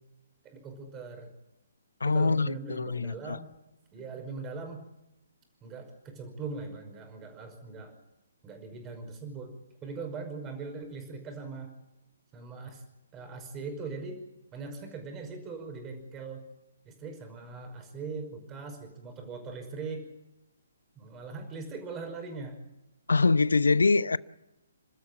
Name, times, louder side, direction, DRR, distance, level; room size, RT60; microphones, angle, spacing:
voice 1, 0.4-1.3 2.1-3.5 3.9-4.9 5.6-7.9 8.4-11.7 12.3-12.8 13.1-14.2 14.5-16.4 16.9-20.1 21.0-22.7, right 4 dB, 20° right, 5.4 m, -40 dB
voice 2, 2.0-3.4 23.1-24.2, left 3 dB, 75° left, 0.8 m, -24 dB
30.0 x 13.0 x 8.7 m
figure-of-eight pair, 135°, 0 cm